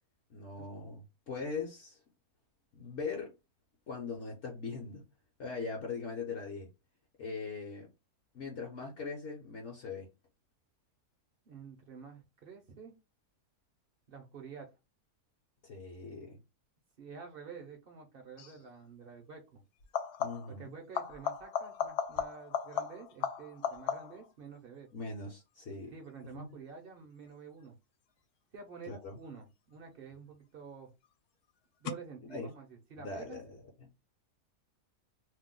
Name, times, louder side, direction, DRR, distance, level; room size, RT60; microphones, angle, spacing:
voice 1, 0.3-2.0 2.7-3.3 3.9-5.0 5.4-6.7 7.2-7.9 8.3-10.1 15.6-16.4 20.2-20.7 24.9-25.9 26.3-26.5 28.8-29.2 32.3-32.5 33.0-33.6, left 4 dB, 55° left, 0.9 m, -40 dB
voice 2, 11.5-12.9 14.1-14.7 17.0-19.6 20.5-24.9 25.9-27.8 28.5-30.9 31.8-33.4, right 6 dB, 55° right, 0.6 m, -49 dB
sound 1, 18.4-18.6 19.8-20.6 20.9-24.3 29.8-30.3 31.9-32.0, left 8 dB, 80° left, 1.1 m, -36 dB
2.7 x 2.0 x 3.6 m
omnidirectional pair, 1.6 m